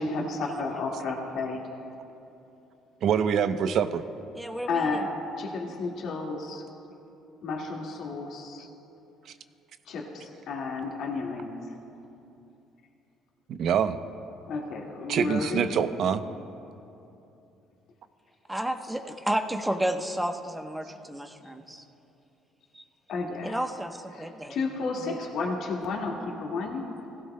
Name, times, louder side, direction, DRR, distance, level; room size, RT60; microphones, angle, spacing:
voice 1, 0.0-1.6 4.7-5.1 5.4-6.6 7.4-8.7 9.9-11.8 14.5-15.8 23.1-23.6 24.1-26.9, left 3 dB, 65° left, -1 dB, 1.9 m, -32 dB
voice 2, 3.0-4.0 13.5-14.0 15.1-16.2, right 8 dB, 60° right, 11 dB, 0.6 m, -25 dB
voice 3, 4.4-4.9 18.5-21.8 22.7-22.8 23.4-24.6 25.0-25.2, right 1 dB, 5° right, 5 dB, 0.9 m, -31 dB
20.5 x 16.0 x 2.2 m, 2.8 s
cardioid pair, 95°, 0 cm